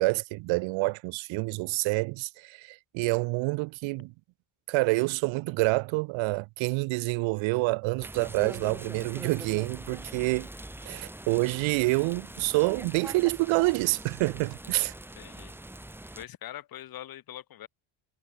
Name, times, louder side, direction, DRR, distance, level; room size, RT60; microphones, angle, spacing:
voice 1, 0.0-4.1 4.7-10.5 10.8-14.9, right 24 dB, 85° right, 1.5 m, -27 dB
sound 1, 8.0-16.3, right 1 dB, 5° right, 3.3 m, -43 dB
voice 2, 15.2-15.9 16.2-17.7, left 12 dB, 50° left, 3.3 m, -44 dB
cardioid pair, 140°, 45 cm